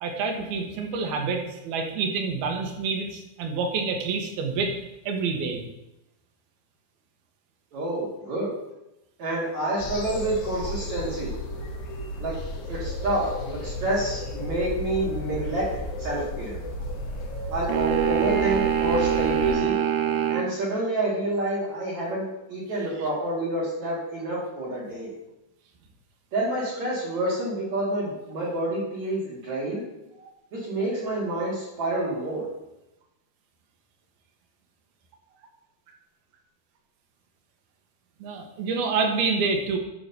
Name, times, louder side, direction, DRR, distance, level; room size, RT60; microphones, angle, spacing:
voice 1, 0.0-4.7 5.1-5.6 19.8-19.9 30.2-30.3 38.2-39.8, right 4 dB, 70° right, 3 dB, 2.9 m, -27 dB
voice 2, 7.7-8.5 9.2-11.3 12.2-12.4 12.7-15.7 16.0-16.6 17.5-19.7 20.3-25.1 26.3-29.8 30.5-32.5, right 1 dB, 50° right, -7 dB, 3.0 m, -28 dB
sound 1, 9.8-19.6, left 1 dB, 65° left, 2.8 m, -33 dB
sound 2, 17.7-20.5, right 10 dB, 90° right, 2.8 m, -24 dB
11.5 x 3.9 x 6.7 m, 0.90 s
omnidirectional pair, 5.0 m